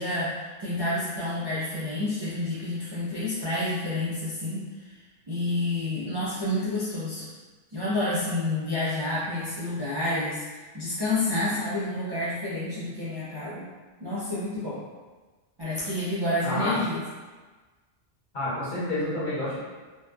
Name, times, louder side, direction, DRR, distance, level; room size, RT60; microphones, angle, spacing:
voice 1, 0.0-4.9 5.3-7.3 7.7-10.4 10.7-13.7 14.0-14.8 15.6-17.0, left 1 dB, 45° right, -10 dB, 0.3 m, -29 dB
voice 2, 16.4-16.8 18.3-19.6, left 1 dB, 50° left, -9 dB, 1.0 m, -29 dB
2.6 x 2.2 x 2.2 m, 1.3 s
omnidirectional pair, 1.1 m